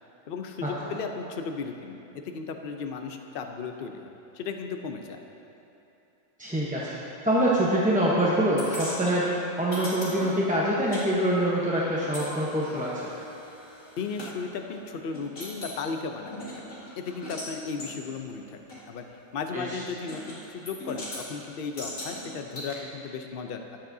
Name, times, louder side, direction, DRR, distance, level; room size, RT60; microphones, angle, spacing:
voice 1, 0.3-5.2 14.0-16.3 17.0-19.0 19.3-23.8, left 5 dB, 50° left, 5 dB, 0.7 m, -35 dB
voice 2, 6.4-9.3 9.6-13.1 19.5-19.8, right 1 dB, 5° right, -7 dB, 0.7 m, -25 dB
sound 1, 8.6-11.0 11.3-14.3 14.8-14.9 15.1-15.8 16.3-17.5 17.8-17.9 18.7-18.8 20.1-20.4 20.7-21.2 21.8-22.7, left 1 dB, 70° left, 2.5 m, -39 dB
13.5 x 10.5 x 2.7 m, 2.9 s
omnidirectional pair, 1.4 m